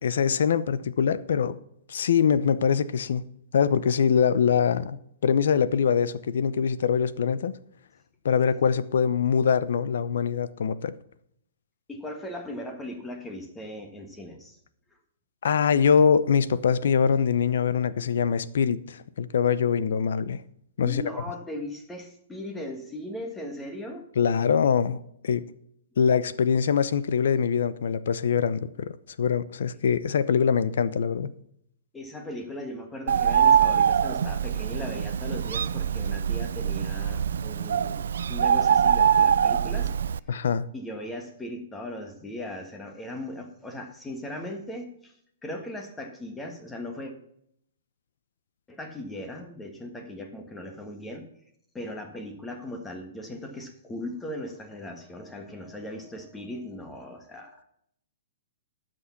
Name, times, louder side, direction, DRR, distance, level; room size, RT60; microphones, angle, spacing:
voice 1, 0.0-1.5 1.9-3.2 3.5-7.5 8.2-10.9 15.4-20.4 20.8-21.0 24.2-25.4 26.0-31.3 40.3-40.7, left 7 dB, 75° left, 0.7 m, -23 dB
voice 2, 11.9-14.6 20.8-24.0 31.9-39.9 40.3-40.4 40.7-45.1 45.4-47.1 48.7-51.3 51.7-57.6, left 1 dB, 10° left, 1.5 m, -38 dB
Bird, 33.1-40.2, right 8 dB, 80° right, 0.3 m, -23 dB
12.5 x 6.3 x 5.8 m
hypercardioid pair, 155°, 0 cm